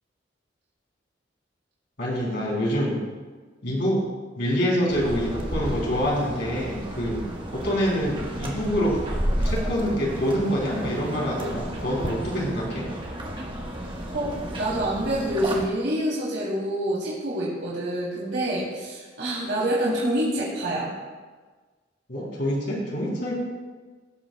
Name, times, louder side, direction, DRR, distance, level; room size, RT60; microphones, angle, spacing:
voice 1, 2.0-3.0 3.6-4.0 4.4-7.2 7.5-9.0 9.4-12.9 22.1-23.3, equal, 65° left, -4 dB, 3.2 m, -26 dB
sound 1, 4.9-15.7, equal, 30° right, 1.3 m, -32 dB
voice 2, 14.1-20.9, right 1 dB, 80° right, -7 dB, 2.9 m, -27 dB
17.5 x 7.8 x 2.2 m, 1.4 s
head